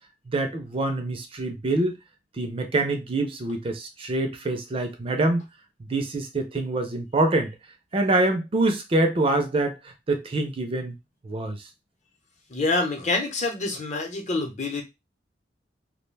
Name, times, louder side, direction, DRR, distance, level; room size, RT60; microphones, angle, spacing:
voice 1, 0.3-2.0 2.4-5.4 5.8-7.5 7.9-10.9 11.2-11.7, right 2 dB, 30° right, 0.4 m, -25 dB
voice 2, 12.5-14.8, left 3 dB, 40° left, 0.7 m, -26 dB
2.3 x 2.1 x 3.2 m
head